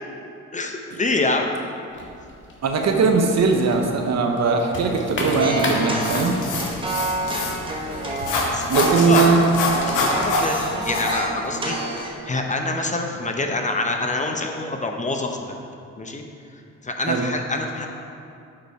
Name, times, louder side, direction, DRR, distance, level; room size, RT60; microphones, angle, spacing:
voice 1, 0.5-1.5 8.5-9.2 10.0-11.8 12.0-15.6 16.0-16.2 16.5-17.9, left 2 dB, 25° left, 3 dB, 0.8 m, -26 dB
sound 1, 1.9-12.1, left 2 dB, 40° left, 1.7 m, -35 dB
voice 2, 2.6-6.4 8.7-9.4 17.1-17.3, right 4 dB, 60° right, 3 dB, 1.0 m, -19 dB
sound 2, 5.4-12.1, right 2 dB, 15° right, 1.3 m, -29 dB
sound 3, 6.0-11.1, left 3 dB, 85° left, 1.3 m, -25 dB
8.5 x 5.6 x 4.6 m, 2.5 s
cardioid pair, 90°, 30 cm